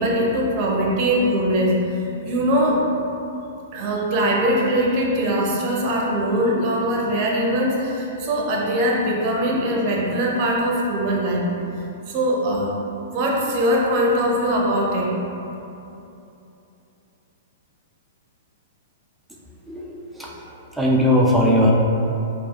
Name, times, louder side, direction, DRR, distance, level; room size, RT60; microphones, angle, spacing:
voice 1, 0.0-1.7 2.2-2.9 3.7-11.5 12.1-15.1, equal, 35° right, -2 dB, 0.7 m, -21 dB
voice 2, 20.8-21.7, left 1 dB, ahead, -5 dB, 0.4 m, -17 dB
4.5 x 2.4 x 2.9 m, 2.8 s
hypercardioid pair, 155°, 0 cm